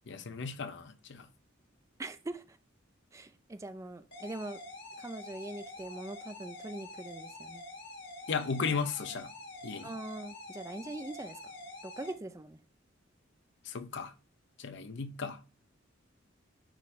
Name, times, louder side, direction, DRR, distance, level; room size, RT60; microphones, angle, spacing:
voice 1, 0.1-1.3 8.3-9.3 9.6-9.9 13.6-14.1 14.6-15.4, left 5 dB, 60° left, 0.6 m, -35 dB
voice 2, 2.0-2.6 3.1-4.6 5.0-7.6 9.8-11.4 11.8-12.6, right 2 dB, 15° right, 0.4 m, -42 dB
sound 1, 4.1-12.1, left 2 dB, 80° left, 2.8 m, -47 dB
9.9 x 3.7 x 3.2 m
head